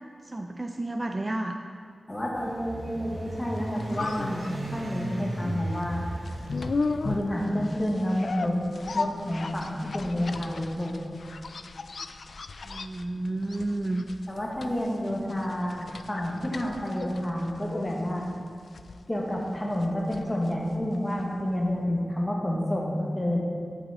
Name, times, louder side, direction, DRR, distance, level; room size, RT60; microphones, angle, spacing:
voice 1, 0.2-1.6 12.6-14.0, right 2 dB, 25° right, 5 dB, 0.4 m, -31 dB
voice 2, 2.1-6.0 7.0-8.6 8.9-11.1 14.3-18.3 19.1-23.4, left 1 dB, 15° left, -2 dB, 1.4 m, -29 dB
sound 1, 2.3-7.8, right 1 dB, 60° right, 1.1 m, -36 dB
sound 2, 3.4-21.4 21.7-21.8, left 4 dB, 70° left, 0.3 m, -37 dB
11.5 x 6.1 x 3.6 m, 2.2 s
wide cardioid pair, 95°, 0 cm